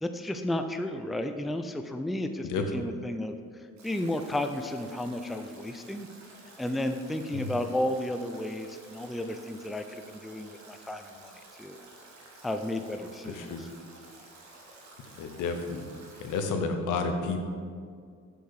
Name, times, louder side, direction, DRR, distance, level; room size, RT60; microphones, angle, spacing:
voice 1, 0.0-6.1 6.6-11.8 12.4-13.7, left 1 dB, ahead, 7 dB, 0.3 m, -33 dB
voice 2, 2.4-2.9 7.3-7.5 13.2-13.6 15.1-15.8 16.2-17.4, left 4 dB, 85° left, 5 dB, 0.8 m, -31 dB
Stream / Drip / Trickle dribble, 3.8-16.4, right 2 dB, 65° right, 1.4 m, -52 dB
6.6 x 4.7 x 4.7 m, 2.1 s
cardioid pair, 90°, 30 cm